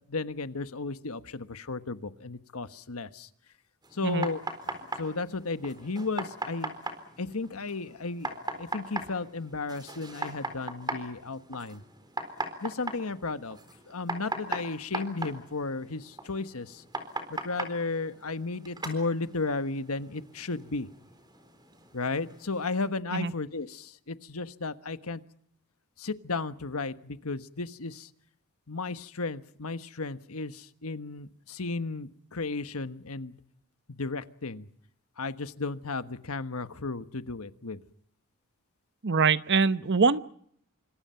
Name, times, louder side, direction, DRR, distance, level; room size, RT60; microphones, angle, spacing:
voice 1, 0.1-3.3 3.9-6.7 7.2-11.8 12.6-13.6 13.9-16.8 17.3-20.9 21.9-25.2 26.0-28.1 28.7-33.4 33.9-34.7 35.2-37.8, left 3 dB, 75° left, 11 dB, 1.4 m, -34 dB
sound 1, 3.8-22.9, right 2 dB, 20° right, 4.1 m, -40 dB
voice 2, 39.0-40.2, right 4 dB, 55° right, 14 dB, 0.9 m, -23 dB
27.5 x 25.0 x 5.8 m, 0.67 s
head